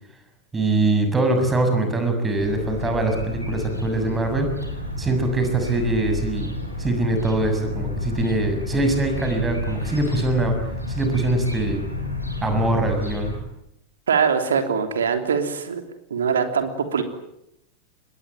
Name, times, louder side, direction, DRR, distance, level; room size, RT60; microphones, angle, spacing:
voice 1, 0.5-4.6 5.0-6.5 6.8-10.6 10.9-11.8 12.4-13.3, right 2 dB, 15° right, 6 dB, 6.8 m, -23 dB
sound 1, 2.3-13.4, left 2 dB, 90° left, 6.9 m, -30 dB
voice 2, 14.1-15.8 16.1-17.0, right 6 dB, 65° right, 7 dB, 3.3 m, -22 dB
25.0 x 21.5 x 9.3 m, 0.81 s
figure-of-eight pair, 90°, 0 cm